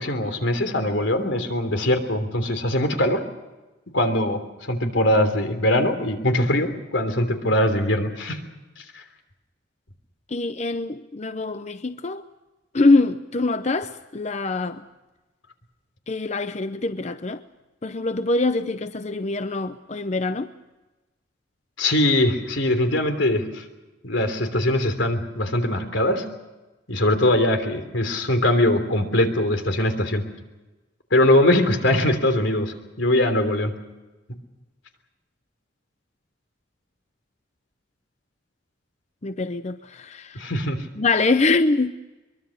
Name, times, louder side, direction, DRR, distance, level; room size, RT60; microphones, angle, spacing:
voice 1, 0.0-3.2 3.9-8.4 8.9-9.0 21.8-23.6 24.0-26.2 26.9-30.2 31.1-33.7 40.3-40.8, left 1 dB, 85° left, 3.3 m, -21 dB
voice 2, 10.3-12.2 12.7-14.8 16.1-17.4 17.8-20.5 39.2-40.5 41.0-41.9, left 3 dB, 35° left, 0.6 m, -24 dB
23.0 x 23.0 x 6.5 m
head